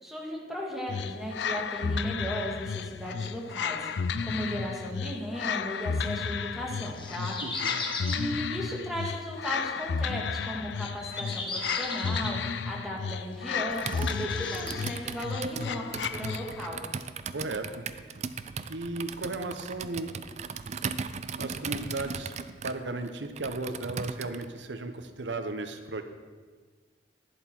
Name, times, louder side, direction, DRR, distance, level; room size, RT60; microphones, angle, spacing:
voice 1, 0.0-7.4 8.0-16.8, equal, ahead, -3 dB, 2.0 m, -36 dB
sound 1, 0.9-16.8, left 6 dB, 75° left, 0.4 m, -33 dB
sound 2, 6.9-8.2 8.8-9.0 10.8-12.4 13.0-13.1 13.5-14.7, left 3 dB, 30° left, 1.3 m, -37 dB
voice 2, 7.4-7.8 17.3-17.8 18.7-20.1 21.4-22.3 22.6-26.0, right 2 dB, 85° right, 8 dB, 1.0 m, -35 dB
Computer keyboard, 13.7-24.5, right 5 dB, 40° right, 0.4 m, -38 dB
11.0 x 10.5 x 4.5 m, 1.5 s
head